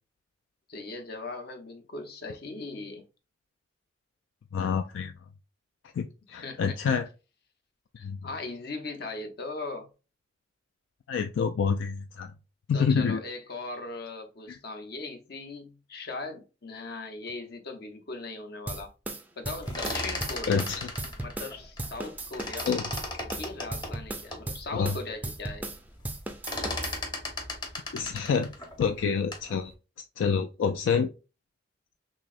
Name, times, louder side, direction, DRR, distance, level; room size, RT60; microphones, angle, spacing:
voice 1, 0.7-3.0 6.4-6.7 8.2-9.9 12.7-18.9 19.4-20.6 21.2-22.7 23.4-25.6, left 3 dB, 55° left, 0.7 m, -39 dB
voice 2, 4.5-5.1 6.0-7.1 7.9-8.2 11.1-12.3 12.7-13.2 14.5-14.6 20.5-20.9 22.6-22.9 24.7-25.0 27.9-29.7 30.2-31.1, left 6 dB, 80° left, 0.3 m, -27 dB
sound 1, 18.7-21.5 21.8-25.8 26.0-27.0, right 2 dB, 10° right, 0.4 m, -36 dB
sound 2, 19.6-22.1 22.3-24.5 25.0-25.1 25.3-25.7 26.0-29.5, left 2 dB, 25° left, 0.8 m, -36 dB
6.1 x 2.0 x 2.4 m
head